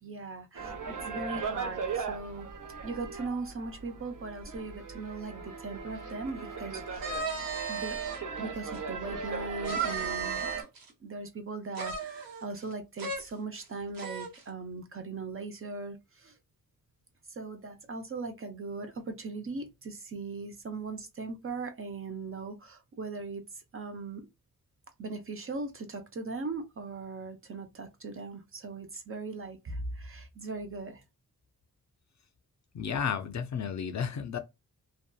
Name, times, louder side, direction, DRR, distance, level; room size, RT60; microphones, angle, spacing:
voice 1, 0.0-2.5 2.8-7.2 7.7-8.0 8.4-10.5 11.0-16.4 17.3-24.3 25.0-31.0, right 3 dB, 40° right, 0.5 m, -39 dB
sound 1, 0.5-10.6, right 5 dB, 65° right, 0.8 m, -39 dB
sound 2, 7.0-8.2 8.7-8.8 9.6-10.9 11.7-12.7 13.0-13.2 13.6-13.7 14.0-14.4, right 5 dB, 85° right, 1.1 m, -35 dB
voice 2, 32.7-34.4, left 7 dB, 55° left, 0.4 m, -32 dB
2.7 x 2.2 x 2.2 m
wide cardioid pair, 115°, 34 cm